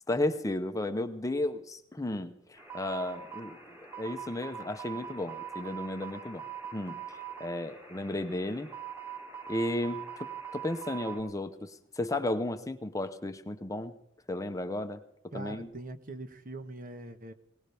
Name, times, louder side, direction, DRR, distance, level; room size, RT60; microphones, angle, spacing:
voice 1, 0.1-6.4 6.7-8.7 9.5-14.0 14.3-15.0 15.3-15.7, left 1 dB, 15° left, 8 dB, 0.8 m, -34 dB
sound 1, 2.6-11.2, right 8 dB, 10° right, 3.0 m, -43 dB
voice 2, 15.3-17.3, right 1 dB, 45° right, 9 dB, 1.3 m, -42 dB
21.0 x 19.0 x 3.5 m, 0.74 s
head